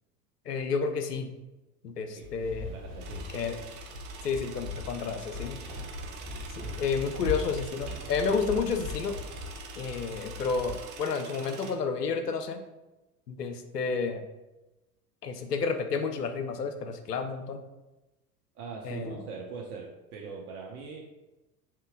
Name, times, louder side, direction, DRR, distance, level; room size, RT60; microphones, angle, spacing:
voice 1, 0.5-1.3 1.8-2.7 3.3-3.6 4.2-5.6 6.5-9.2 9.8-12.6 13.3-14.2 15.2-17.6 18.8-19.2, left 5 dB, 85° left, 7 dB, 0.6 m, -31 dB
sound 1, 2.2-10.7, left 3 dB, 50° right, 1.5 m, -40 dB
voice 2, 2.7-3.3 18.6-21.0, right 5 dB, 65° right, -1 dB, 0.7 m, -41 dB
sound 2, 3.0-11.7, right 6 dB, 25° right, 0.4 m, -46 dB
3.7 x 2.9 x 3.5 m, 1.0 s
figure-of-eight pair, 85°, 47 cm